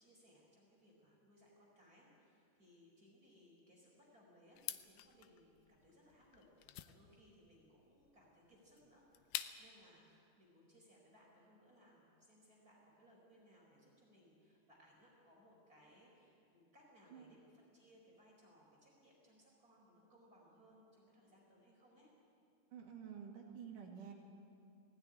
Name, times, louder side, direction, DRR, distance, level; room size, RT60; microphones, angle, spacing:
voice 1, 0.0-22.1, equal, 20° right, -4 dB, 4.5 m, -66 dB
sound 1, 4.6-9.8, left 13 dB, 85° left, 2.0 m, -48 dB
voice 2, 22.7-24.1, right 7 dB, 55° right, 1 dB, 3.3 m, -50 dB
19.0 x 16.5 x 9.9 m, 2.6 s
omnidirectional pair, 4.8 m